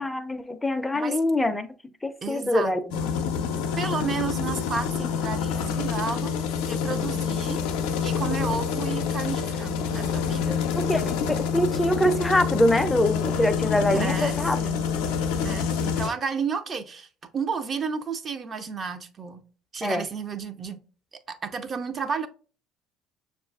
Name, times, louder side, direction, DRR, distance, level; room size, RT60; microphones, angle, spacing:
voice 1, 0.0-1.7 2.0-3.0 10.8-14.6 19.8-20.0, left 1 dB, 15° left, 0.4 m, -24 dB
voice 2, 2.2-2.7 3.8-6.3 6.7-7.6 8.0-10.6 13.9-14.8 15.4-17.1 17.3-19.4 19.7-20.8 21.3-22.3, right 5 dB, 40° right, 0.5 m, -32 dB
sound 1, 2.9-16.1, left 7 dB, 80° left, 0.4 m, -27 dB
6.2 x 2.4 x 2.3 m
supercardioid pair, 80°, 0 cm